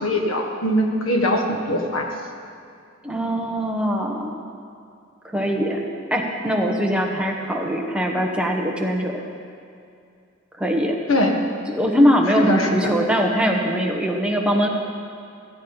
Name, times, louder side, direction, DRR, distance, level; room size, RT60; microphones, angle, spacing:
voice 1, 0.0-2.1 11.1-11.4 12.5-12.9, left 1 dB, 85° left, 2 dB, 1.6 m, -21 dB
voice 2, 3.0-4.3 5.2-5.8 6.1-9.2 10.6-11.0 11.7-14.7, equal, 5° right, 0 dB, 1.2 m, -21 dB
15.0 x 14.5 x 4.0 m, 2.4 s
head